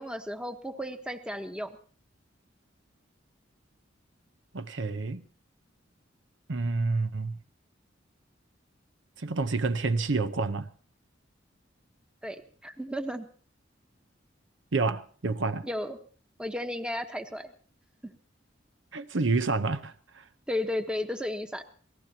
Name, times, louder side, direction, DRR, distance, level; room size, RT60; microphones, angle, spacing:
voice 1, 0.0-1.8 12.2-13.3 15.6-16.0 16.4-17.5 18.0-18.1 20.5-21.6, left 1 dB, 5° right, 1.1 m, -34 dB
voice 2, 4.5-5.3 6.5-7.4 9.2-10.7 14.7-15.7 18.9-20.3, right 3 dB, 75° right, 0.9 m, -29 dB
27.0 x 18.5 x 2.9 m
head